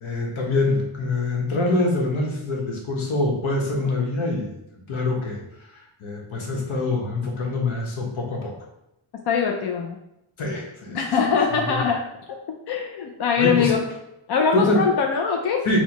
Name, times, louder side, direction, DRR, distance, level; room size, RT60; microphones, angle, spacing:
voice 1, 0.0-4.5 4.7-8.5 10.4-11.0 11.6-11.9 13.4-13.7 14.5-14.8 15.6-15.8, left 2 dB, 75° left, 0 dB, 1.1 m, -25 dB
voice 2, 9.3-10.0 10.9-13.8 14.3-15.6, left 6 dB, 55° left, 2 dB, 0.5 m, -22 dB
4.4 x 2.3 x 4.5 m, 0.85 s
wide cardioid pair, 165°, 48 cm